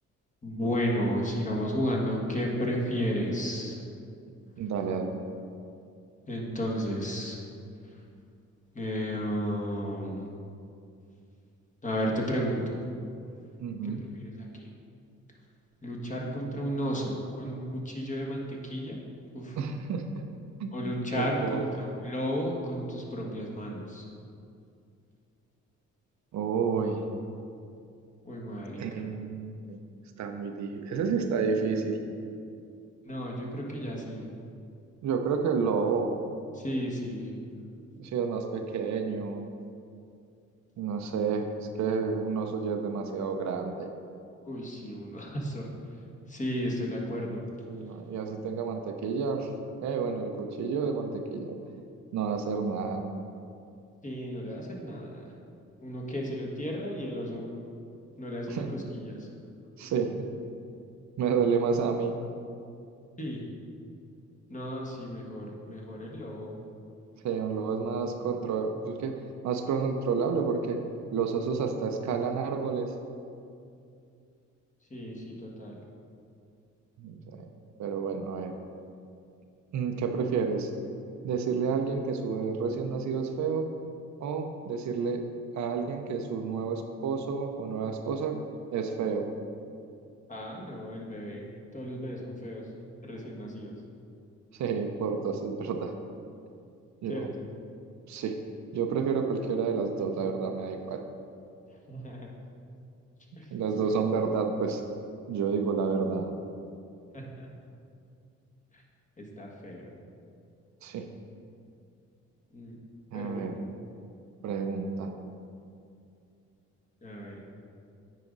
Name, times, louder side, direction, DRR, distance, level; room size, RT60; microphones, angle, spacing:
voice 1, 0.4-3.8 6.3-7.4 7.8-8.0 8.7-10.3 11.8-12.8 14.6-14.7 15.8-19.0 19.3-19.6 20.7-24.1 28.2-29.1 33.0-34.3 36.5-37.3 44.4-45.7 46.3-47.4 54.0-55.3 55.8-57.5 58.2-59.3 63.2-63.5 64.5-66.6 74.9-75.8 90.3-92.7 93.0-93.8 97.1-97.3 101.9-102.3 103.3-103.5 103.8-103.9 107.1-107.5 108.7-108.8 109.2-109.9 112.5-112.8 113.1-113.5 117.0-117.4, equal, 25° left, -2 dB, 1.5 m, -33 dB
voice 2, 4.6-5.2 13.6-14.0 19.6-20.3 20.6-20.7 21.2-21.7 26.3-27.0 28.8-29.8 30.2-32.0 35.0-36.1 38.0-39.5 40.8-41.5 41.7-43.9 47.7-49.5 49.8-51.6 52.1-53.1 58.5-58.7 59.8-60.3 61.2-62.1 67.2-69.2 69.4-70.8 71.1-72.9 77.0-77.2 77.8-78.5 79.7-80.7 81.2-83.7 84.2-85.2 85.5-88.4 88.7-89.3 94.5-95.9 97.0-97.3 98.1-98.4 98.7-101.0 103.5-104.8 105.3-106.3 110.8-111.1 113.1-113.5 114.4-115.1, right 5 dB, 65° right, 4 dB, 0.7 m, -30 dB
9.1 x 5.0 x 4.0 m, 2.4 s
cardioid pair, 90°, 30 cm